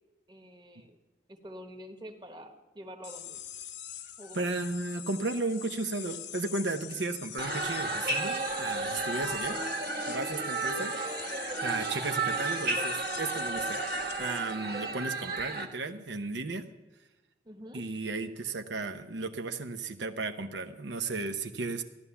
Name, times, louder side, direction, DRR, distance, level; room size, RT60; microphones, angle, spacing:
voice 1, 0.3-1.0 1.3-3.4 4.2-4.4 9.2-9.7 17.4-17.8, equal, 25° right, 5 dB, 1.3 m, -46 dB
sound 1, 3.0-14.6, left 10 dB, 90° left, 0.8 m, -44 dB
voice 2, 4.3-9.6 10.1-11.3 11.6-13.8 14.2-16.6 17.7-21.8, right 3 dB, 90° right, 7 dB, 0.8 m, -34 dB
sound 2, 7.4-15.6, right 3 dB, 55° right, 1.4 m, -33 dB
14.5 x 11.5 x 7.0 m, 1.1 s
head